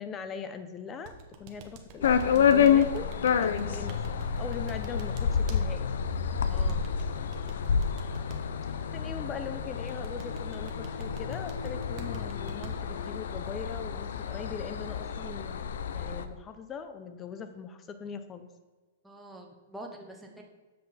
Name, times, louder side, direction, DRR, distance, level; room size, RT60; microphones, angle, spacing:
voice 1, 0.0-5.9 8.7-18.5, left 6 dB, 20° left, 9 dB, 0.6 m, -41 dB
sound 1, 1.0-5.6 6.7-8.4 9.9-12.7, right 7 dB, 35° right, 1.0 m, -47 dB
sound 2, 2.0-16.2, left 7 dB, 75° left, 0.5 m, -29 dB
voice 2, 6.5-6.9 19.0-20.4, right 1 dB, 5° right, 1 dB, 0.9 m, -45 dB
7.7 x 5.8 x 4.1 m, 1.3 s
hypercardioid pair, 155°, 0 cm